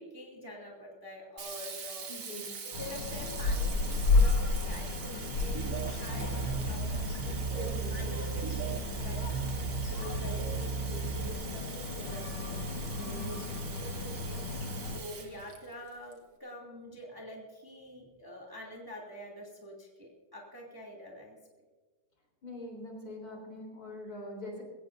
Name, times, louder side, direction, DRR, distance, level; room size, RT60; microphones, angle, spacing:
voice 1, 0.0-2.1 2.8-9.4 9.9-12.6 13.0-13.4 13.8-14.4 14.9-21.4, equal, 10° right, -2 dB, 2.5 m, -46 dB
Sink (filling or washing), 1.4-16.1, right 6 dB, 90° right, 2.6 m, -44 dB
voice 2, 2.1-2.5 7.5-8.0 13.1-13.4 22.4-24.6, left 1 dB, 45° left, 0 dB, 4.4 m, -43 dB
sound 1, 2.7-15.0, left 3 dB, 80° left, 2.5 m, -33 dB
sound 2, 5.5-11.3, right 5 dB, 50° right, 1.2 m, -35 dB
21.5 x 17.5 x 2.7 m, 1.4 s
omnidirectional pair, 2.3 m